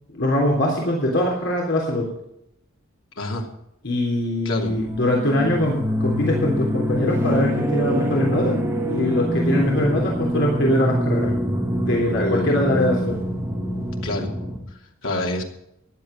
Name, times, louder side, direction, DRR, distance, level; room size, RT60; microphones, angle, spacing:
voice 1, 0.1-2.1 3.8-8.6 8.9-11.3 11.7-13.2, left 1 dB, 60° left, -2 dB, 3.4 m, -22 dB
voice 2, 3.2-3.5 4.4-4.7 12.2-12.6 14.0-14.3 15.0-15.4, left 1 dB, 75° left, 1 dB, 2.8 m, -27 dB
sound 1, 4.6-14.6, equal, 10° right, 2.7 m, -25 dB
15.0 x 11.0 x 5.1 m, 0.80 s
head